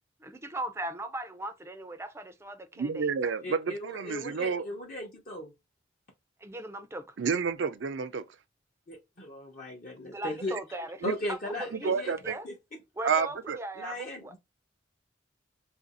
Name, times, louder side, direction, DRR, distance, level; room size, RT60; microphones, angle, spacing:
voice 1, 0.2-3.1 6.4-7.1 10.1-11.0 11.3-11.9 12.2-12.5 13.0-14.4, right 1 dB, 15° right, 0.4 m, -39 dB
voice 2, 2.8-4.7 7.2-8.2 11.0-11.1 11.8-12.4 13.0-13.6, right 5 dB, 75° right, 0.4 m, -29 dB
voice 3, 3.4-5.5 8.9-10.5 11.0-12.1 12.4-12.5 13.8-14.4, left 1 dB, 45° left, 0.7 m, -37 dB
2.8 x 2.5 x 4.0 m
head